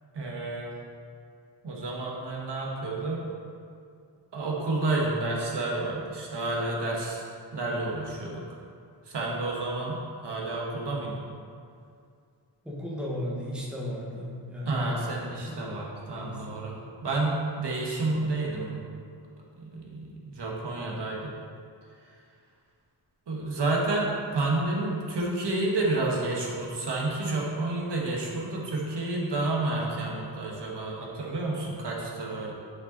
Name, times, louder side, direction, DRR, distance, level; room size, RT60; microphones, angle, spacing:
voice 1, 0.1-0.7 1.6-3.2 4.3-7.2 7.5-8.4 9.0-11.2 14.6-16.8 17.0-18.8 19.6-21.3 22.0-22.1 23.3-32.5, right 2 dB, 60° right, -3 dB, 1.6 m, -30 dB
voice 2, 12.6-14.9 15.3-15.6 16.1-16.7, equal, ahead, -5 dB, 1.3 m, -35 dB
10.5 x 5.6 x 4.1 m, 2.3 s
wide cardioid pair, 165°, 45 cm